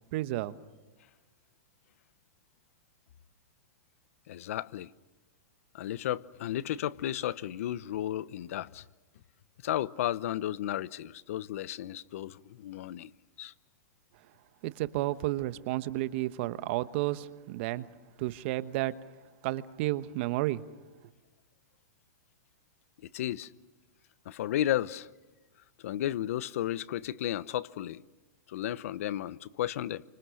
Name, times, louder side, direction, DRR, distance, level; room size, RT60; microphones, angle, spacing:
voice 1, 0.1-0.5 14.6-17.9 18.2-18.9 19.4-20.6, right 17 dB, 45° right, 1.2 m, -31 dB
voice 2, 4.3-4.9 5.7-8.8 9.6-13.1 13.4-13.5 23.0-23.5 24.2-25.1 25.8-28.0 28.5-30.0, left 12 dB, 65° left, 0.9 m, -33 dB
29.5 x 25.5 x 6.5 m
hypercardioid pair, 145°, 8 cm